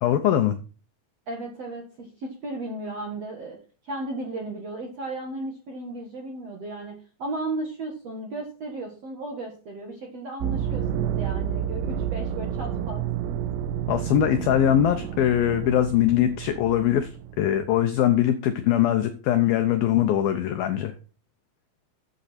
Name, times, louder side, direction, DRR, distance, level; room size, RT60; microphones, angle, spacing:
voice 1, 0.0-0.6 13.9-20.9, left 11 dB, 85° left, 8 dB, 2.1 m, -22 dB
voice 2, 1.3-3.6 3.8-13.0, right 2 dB, 60° right, 2 dB, 1.7 m, -35 dB
sound 1, 10.4-17.7, right 9 dB, 85° right, 3.4 m, -30 dB
13.5 x 7.9 x 4.3 m, 0.37 s
omnidirectional pair, 5.5 m